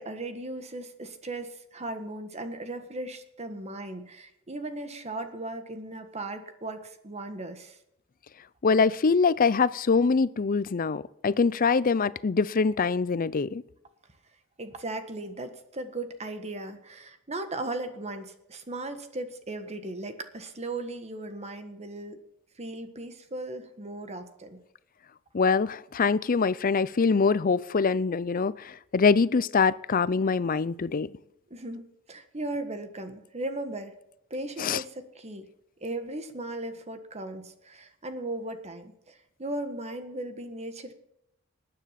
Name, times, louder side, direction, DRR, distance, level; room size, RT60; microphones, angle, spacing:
voice 1, 0.0-7.8 14.6-22.2 22.6-24.6 31.5-33.9 34.3-35.5 35.8-40.9, right 2 dB, 30° right, 1.5 m, -37 dB
voice 2, 8.6-13.6 25.3-31.1 34.6-34.8, left 5 dB, 40° left, 0.5 m, -24 dB
19.0 x 10.0 x 5.9 m
head